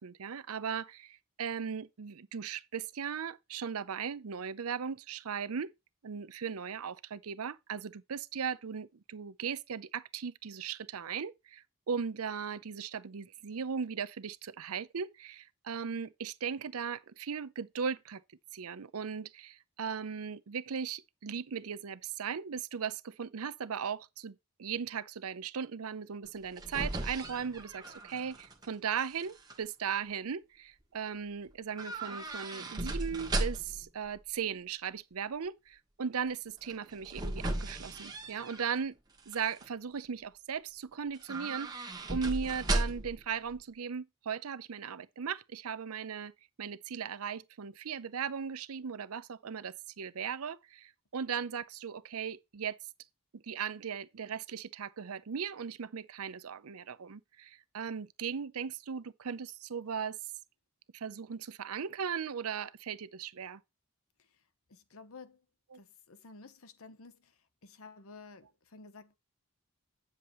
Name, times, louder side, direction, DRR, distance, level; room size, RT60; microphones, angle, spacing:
voice 1, 0.0-5.7 6.0-18.2 18.5-39.0 39.3-46.3 46.6-52.8 53.3-60.2 60.9-63.6 65.7-65.8, right 6 dB, 85° right, 0.6 m, -38 dB
sound 1, 26.3-28.7 29.0-29.6 31.8-33.9 36.6-38.8 39.2-39.7 41.1-43.2 43.5-43.6, right 2 dB, 20° right, 1.3 m, -36 dB
voice 2, 64.7-65.4 65.8-67.3 67.6-69.2, left 4 dB, 75° left, 0.9 m, -52 dB
9.4 x 7.2 x 3.1 m
head